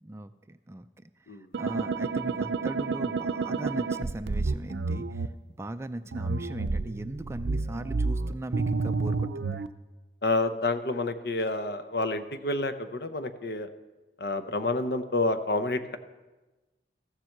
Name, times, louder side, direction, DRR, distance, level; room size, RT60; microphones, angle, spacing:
voice 1, 0.0-5.3 5.6-9.6, right 1 dB, 15° right, 11 dB, 0.3 m, -39 dB
sound 1, 1.5-5.3 6.1-9.7, right 4 dB, 70° right, 0.5 m, -30 dB
voice 2, 10.2-13.7 14.2-16.0, left 2 dB, 60° left, 9 dB, 0.8 m, -29 dB
14.5 x 7.5 x 6.5 m, 1.2 s
head